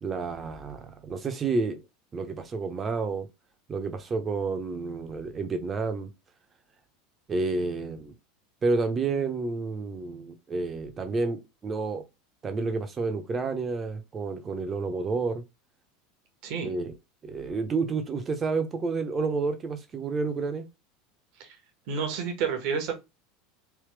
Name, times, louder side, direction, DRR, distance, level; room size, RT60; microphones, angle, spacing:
voice 1, 0.0-1.8 2.1-3.3 3.7-6.1 7.3-8.1 8.6-12.0 12.4-15.4 16.6-16.9 17.2-20.6, right 4 dB, 30° right, 1.0 m, -30 dB
voice 2, 21.9-22.9, right 6 dB, 55° right, 1.3 m, -30 dB
3.5 x 3.1 x 3.3 m
figure-of-eight pair, 80°, 0 cm